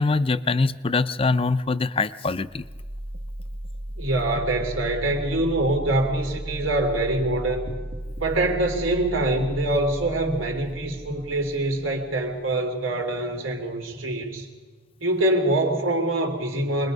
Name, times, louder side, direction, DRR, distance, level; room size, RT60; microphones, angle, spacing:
voice 1, 0.0-2.7, left 3 dB, 30° left, 14 dB, 0.5 m, -23 dB
sound 1, 2.4-14.4, right 1 dB, 60° right, 1.6 m, -36 dB
voice 2, 3.9-7.7 8.2-14.5 15.0-16.9, right 1 dB, 85° right, 2 dB, 3.2 m, -24 dB
25.5 x 21.0 x 5.4 m, 1.4 s
head